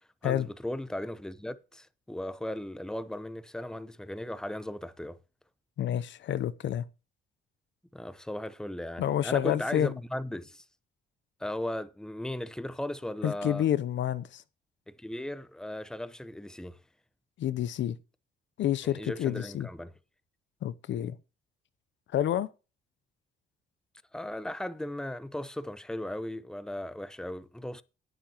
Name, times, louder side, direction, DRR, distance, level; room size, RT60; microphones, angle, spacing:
voice 1, 0.2-5.2 7.9-10.6 11.4-13.6 14.9-16.8 18.8-19.9 24.1-27.8, left 1 dB, 5° left, 0.9 m, -37 dB
voice 2, 5.8-6.8 9.0-9.9 13.2-14.4 17.4-18.0 18.6-19.7 20.6-21.1 22.1-22.5, left 11 dB, 70° left, 0.8 m, -29 dB
18.0 x 7.2 x 3.0 m
cardioid pair, 90°, 20 cm